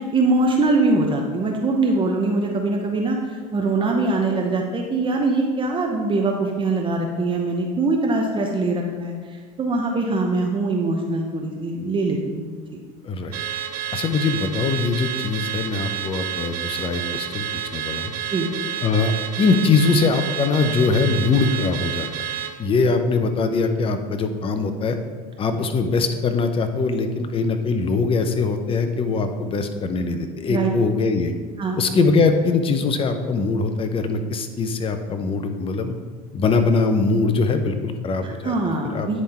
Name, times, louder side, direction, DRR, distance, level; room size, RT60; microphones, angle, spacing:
voice 1, 0.0-3.2 3.5-12.5 18.3-18.5 30.5-30.7 31.6-31.8 38.2-39.2, right 3 dB, 25° right, 1 dB, 0.8 m, -22 dB
voice 2, 13.0-13.4 13.9-17.5 17.7-18.1 18.8-22.1 22.6-25.0 25.4-31.3 31.8-35.9 36.3-38.5 38.9-39.1, left 4 dB, 30° left, 7 dB, 0.7 m, -22 dB
Car / Alarm, 13.3-22.6, right 9 dB, 50° right, 0.8 m, -30 dB
9.6 x 3.6 x 4.3 m, 1.5 s
supercardioid pair, 100°, 20 cm